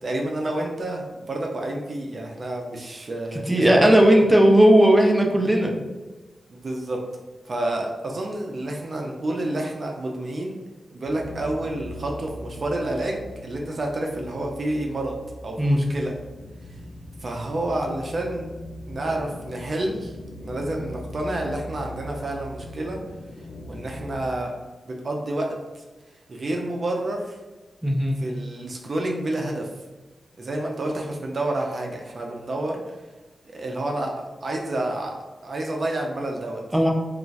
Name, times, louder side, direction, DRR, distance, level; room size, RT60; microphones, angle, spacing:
voice 1, 0.0-4.0 6.5-7.0 7.4-10.6 10.9-15.2 15.4-16.1 17.2-18.5 18.9-20.2 20.4-23.0 23.7-24.5 24.9-25.8 26.3-27.4 28.2-29.7 30.4-32.9 33.4-35.2 35.4-36.6, right 1 dB, 60° right, 0 dB, 0.5 m, -29 dB
voice 2, 3.3-5.7 15.6-15.8 27.8-28.2 36.7-36.9, right 1 dB, 10° right, 1 dB, 0.6 m, -16 dB
sound 1, 11.1-24.3, left 1 dB, 80° left, 0.4 m, -40 dB
2.4 x 2.2 x 3.9 m, 1.2 s
cardioid pair, 50°, 0 cm